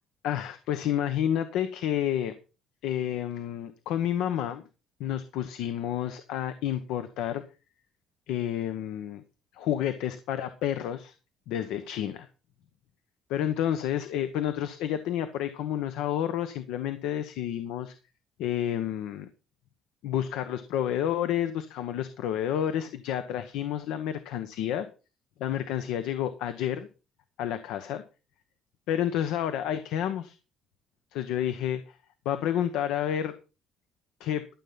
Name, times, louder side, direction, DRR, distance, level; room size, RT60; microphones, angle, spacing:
voice 1, 0.2-2.3 2.8-4.6 5.0-7.4 8.3-9.2 9.5-11.1 11.5-12.3 13.3-17.9 18.4-19.3 20.0-24.9 25.4-26.9 27.4-28.0 28.9-30.4 31.1-32.0 32.2-33.4 34.2-34.4, left 10 dB, 90° left, 10 dB, 1.0 m, -30 dB
13.0 x 7.2 x 5.7 m, 0.33 s
cardioid pair, 120°, 0 cm